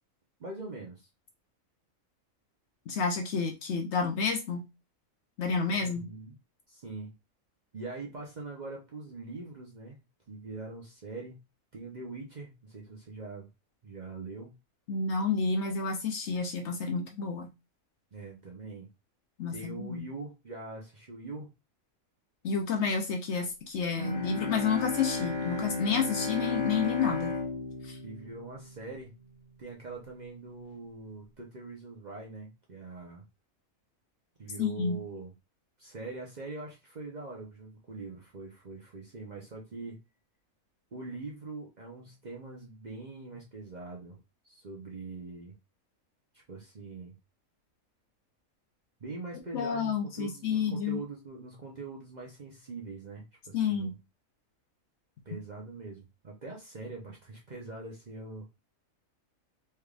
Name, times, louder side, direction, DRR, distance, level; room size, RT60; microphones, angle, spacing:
voice 1, 0.4-1.1 5.7-6.4 6.7-7.1 7.7-10.0 10.3-11.4 11.7-13.5 13.8-14.6 18.1-18.9 19.5-21.5 28.0-29.2 29.6-33.2 34.4-35.3 35.8-40.0 40.9-44.2 44.4-45.5 46.3-47.2 49.0-54.0 55.2-58.5, right 3 dB, 40° right, 0.7 m, -43 dB
voice 2, 2.9-4.7 5.4-6.1 14.9-17.5 19.4-20.0 22.4-27.4 27.8-28.0 34.6-35.0 49.5-51.0 53.5-53.9, left 5 dB, 60° left, 0.8 m, -30 dB
Bowed string instrument, 24.0-29.2, left 3 dB, 40° left, 1.0 m, -34 dB
3.4 x 3.3 x 2.4 m
omnidirectional pair, 1.5 m